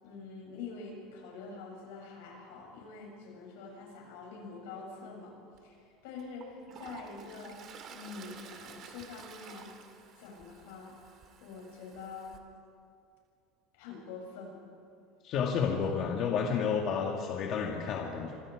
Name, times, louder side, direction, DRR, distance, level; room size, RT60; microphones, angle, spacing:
voice 1, 0.0-5.4 5.6-5.8 6.0-7.6 7.9-9.7 10.2-11.0 11.4-12.4 13.7-14.6, left 4 dB, 85° left, -1 dB, 7.6 m, -45 dB
Toilet flush, 5.5-5.6 6.2-12.4, right 7 dB, 40° right, 2.3 m, -51 dB
voice 2, 15.2-18.4, left 6 dB, 45° left, 0 dB, 2.0 m, -31 dB
26.5 x 25.0 x 5.0 m, 2.4 s
cardioid pair, 150°, 0 cm